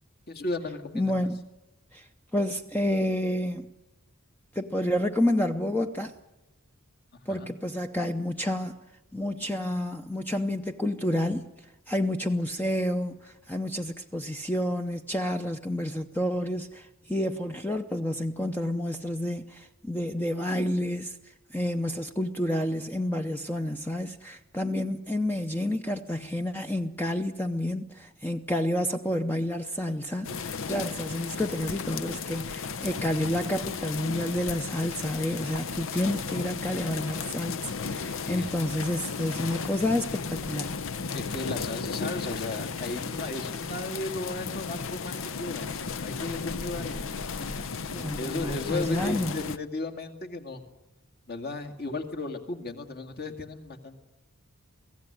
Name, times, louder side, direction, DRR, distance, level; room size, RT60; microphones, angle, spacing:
voice 1, 0.3-1.3 7.3-7.5 38.3-38.5 41.1-47.0 47.8-47.9 48.2-50.6 51.3-54.0, left 2 dB, 45° left, 2.3 m, -35 dB
voice 2, 0.9-1.5 1.9-2.1 2.3-3.7 4.5-6.1 7.3-8.8 9.1-11.5 11.9-21.2 21.5-40.7 47.9-49.4, left 1 dB, 10° left, 0.7 m, -29 dB
sound 1, 30.2-49.6, left 5 dB, 65° left, 0.8 m, -34 dB
23.5 x 16.5 x 9.9 m
head